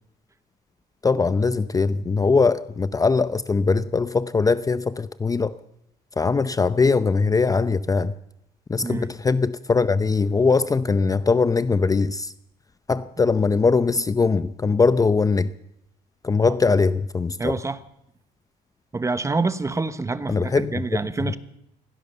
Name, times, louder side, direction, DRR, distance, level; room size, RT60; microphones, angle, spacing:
voice 1, 1.0-5.6 6.2-8.1 8.7-12.3 12.9-15.5 16.2-17.5 20.3-20.7, left 4 dB, 20° left, 0.7 m, -21 dB
voice 2, 17.4-17.8 18.9-21.4, right 3 dB, 15° right, 1.2 m, -27 dB
24.5 x 16.5 x 6.8 m
cardioid pair, 110°, 17 cm